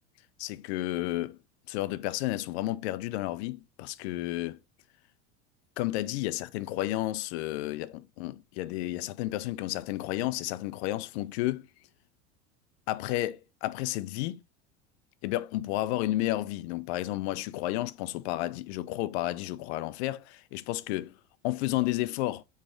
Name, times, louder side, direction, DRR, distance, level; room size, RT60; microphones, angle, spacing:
voice 1, 0.4-1.4 1.7-4.6 5.8-11.7 12.9-14.4 15.2-21.1 21.4-22.4, left 16 dB, 70° left, 0.5 m, -32 dB
4.6 x 3.2 x 3.0 m
hypercardioid pair, 90°, 35 cm